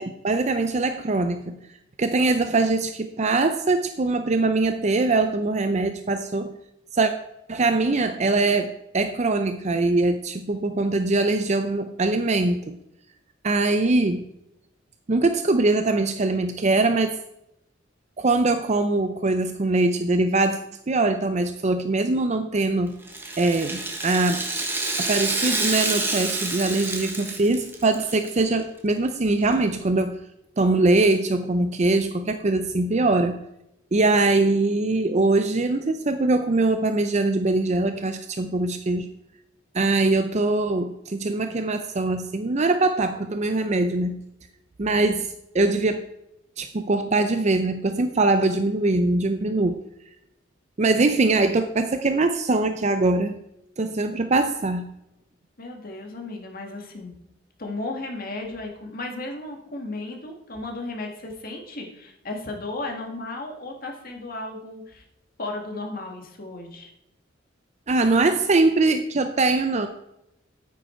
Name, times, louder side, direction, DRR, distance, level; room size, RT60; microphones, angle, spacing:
voice 1, 0.0-1.6 2.0-6.5 6.9-7.1 7.5-12.8 13.4-14.2 15.1-17.2 18.2-20.6 20.9-22.9 23.4-24.4 25.0-30.2 30.6-33.4 33.9-39.1 39.7-44.2 44.8-46.0 46.6-49.8 50.8-53.4 53.8-54.9 67.9-69.9, right 2 dB, 35° right, 8 dB, 0.5 m, -22 dB
Rattle (instrument), 23.0-28.3 28.6-28.7 29.5-29.6, right 2 dB, 10° right, 1.3 m, -28 dB
voice 2, 55.6-57.1 57.6-65.0 65.4-66.9, left 2 dB, 50° left, 2 dB, 1.9 m, -34 dB
9.4 x 9.1 x 4.4 m, 0.83 s
head